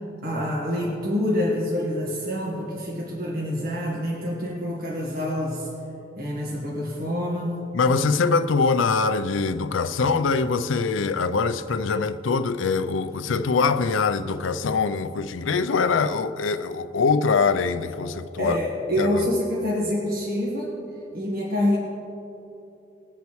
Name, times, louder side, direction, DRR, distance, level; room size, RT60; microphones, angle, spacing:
voice 1, 0.2-5.7 6.2-7.6 18.4-20.7 21.1-21.8, left 1 dB, 50° right, 1.5 m, -26 dB
voice 2, 7.7-18.6 19.0-19.3, left 4 dB, 70° left, 0.5 m, -23 dB
20.0 x 8.2 x 3.2 m
head